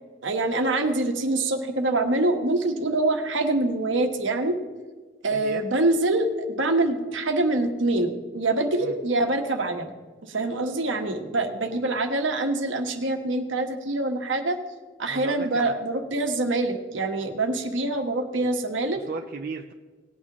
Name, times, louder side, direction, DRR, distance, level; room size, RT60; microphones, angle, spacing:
voice 1, 0.2-4.6 5.2-9.9 10.2-14.6 15.0-19.0, right 2 dB, 70° right, 5 dB, 1.3 m, -25 dB
voice 2, 5.3-5.6 8.8-8.9 11.4-11.8 15.1-15.8 18.3-18.6 18.9-19.7, right 4 dB, 50° right, 3 dB, 0.6 m, -36 dB
19.0 x 8.7 x 3.0 m, 1.4 s
head